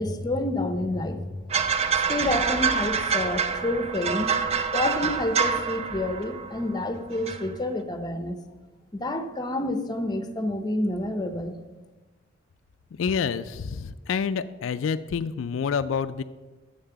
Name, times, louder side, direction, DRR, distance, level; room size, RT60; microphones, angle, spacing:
voice 1, 0.0-1.5 2.1-4.4 4.7-8.4 8.9-11.5, left 1 dB, 20° left, 9 dB, 0.8 m, -28 dB
sound 1, 1.5-6.8 7.1-7.5, right 6 dB, 35° right, 0.5 m, -26 dB
voice 2, 13.0-16.2, left 6 dB, 85° left, 12 dB, 0.4 m, -28 dB
7.3 x 6.8 x 6.9 m, 1.2 s
head